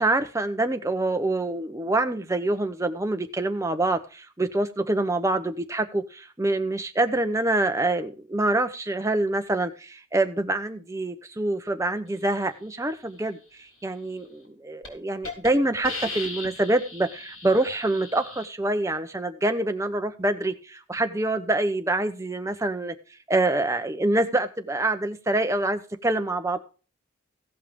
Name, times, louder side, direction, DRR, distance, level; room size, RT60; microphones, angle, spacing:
voice 1, 0.0-13.4 13.8-22.9 23.3-26.6, right 2 dB, 15° right, 7 dB, 0.8 m, -26 dB
Hiss, 14.3-14.5 14.8-14.9 15.2-15.5 15.8-18.5, left 3 dB, 85° left, 3.7 m, -37 dB
16.0 x 5.6 x 5.2 m, 0.36 s
head